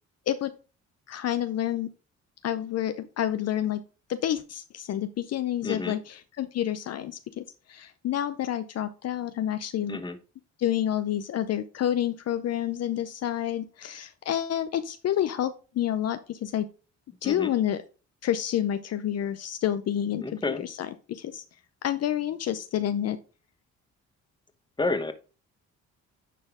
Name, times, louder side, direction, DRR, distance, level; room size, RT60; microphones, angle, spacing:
voice 1, 1.1-1.9 2.4-3.8 4.1-10.0 10.6-16.7 17.2-17.8 18.2-21.4 21.8-23.2, left 11 dB, 55° left, 12 dB, 0.6 m, -29 dB
voice 2, 5.6-6.0 9.9-10.2 17.2-17.5 20.2-20.7 24.8-25.1, left 3 dB, 15° left, 9 dB, 1.0 m, -30 dB
9.9 x 4.3 x 3.6 m, 0.35 s
cardioid pair, 90°, 30 cm